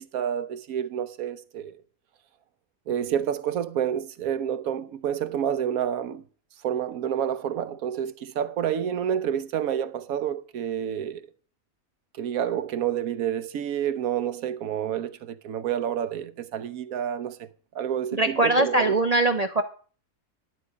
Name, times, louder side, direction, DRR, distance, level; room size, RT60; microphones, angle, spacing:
voice 1, 0.0-1.8 2.9-6.2 6.6-11.2 12.1-19.0, right 9 dB, 85° right, 1.2 m, -29 dB
voice 2, 18.1-19.6, right 2 dB, 40° right, 0.6 m, -22 dB
11.0 x 9.5 x 5.0 m
omnidirectional pair, 1.5 m